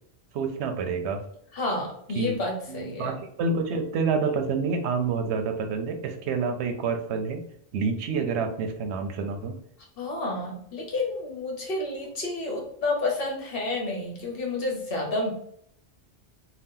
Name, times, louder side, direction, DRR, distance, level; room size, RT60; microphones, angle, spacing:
voice 1, 0.3-1.2 2.1-2.4 2.7-7.4 7.7-9.6, right 5 dB, 75° right, 6 dB, 0.8 m, -28 dB
voice 2, 1.5-3.1 10.0-15.3, left 2 dB, 60° left, 0 dB, 1.0 m, -30 dB
2.8 x 2.1 x 3.6 m, 0.68 s
omnidirectional pair, 1.2 m